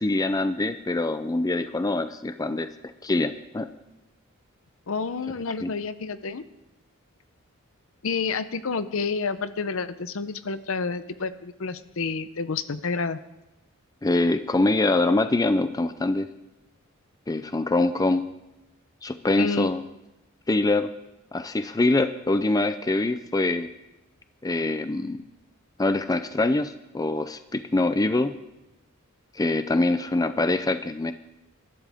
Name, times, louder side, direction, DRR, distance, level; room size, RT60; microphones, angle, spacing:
voice 1, 0.0-2.7 3.0-3.7 5.6-5.7 14.0-16.3 17.3-18.2 19.0-19.8 20.5-20.9 21.3-23.7 24.4-25.2 25.8-28.3 29.3-31.1, left 2 dB, 15° left, 11 dB, 0.4 m, -24 dB
voice 2, 4.9-6.4 8.0-13.2 19.4-19.7, left 4 dB, 65° left, 13 dB, 0.7 m, -29 dB
21.0 x 12.0 x 3.5 m, 0.97 s
head